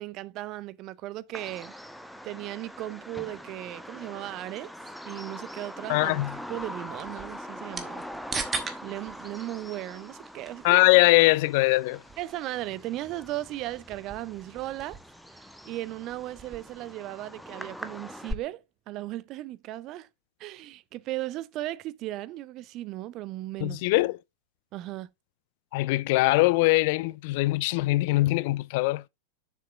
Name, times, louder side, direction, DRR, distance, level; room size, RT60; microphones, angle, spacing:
voice 1, 0.0-1.7 2.2-4.7 5.0-6.2 6.5-8.0 8.8-10.8 12.2-15.0 15.3-20.1 20.4-23.8 24.7-25.1, right 15 dB, 35° right, 0.5 m, -36 dB
Bird vocalization bird call bird song, 1.3-18.3, equal, ahead, 0.8 m, -42 dB
voice 2, 5.9-6.4 10.6-12.0 23.6-24.1 25.7-29.0, left 21 dB, 50° left, 0.3 m, -22 dB
sound 1, 6.1-16.8, right 4 dB, 15° right, 1.3 m, -42 dB
7.1 x 6.6 x 3.3 m
figure-of-eight pair, 90°, 0 cm